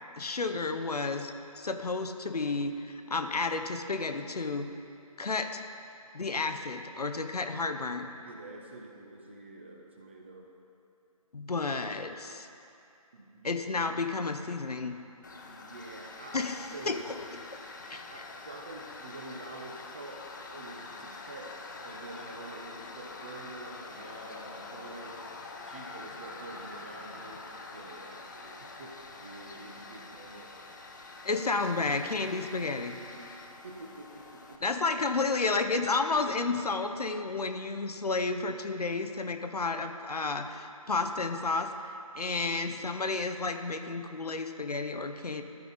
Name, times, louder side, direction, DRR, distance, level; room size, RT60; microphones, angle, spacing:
voice 1, 0.2-4.7 5.2-5.6 6.1-8.1 11.3-12.5 13.4-15.0 16.3-17.0 17.5-17.6 17.9-18.2 31.2-33.0 34.6-45.4, left 3 dB, 85° left, 7 dB, 0.7 m, -31 dB
voice 2, 8.2-10.6 13.1-13.7 15.3-17.0 17.9-25.3 25.6-30.6 33.1-33.3 33.6-34.8, right 2 dB, 20° right, 0 dB, 0.4 m, -47 dB
Tools, 15.2-34.6, left 3 dB, 30° left, 0.5 m, -46 dB
13.0 x 4.7 x 4.0 m, 2.7 s
figure-of-eight pair, 155°, 19 cm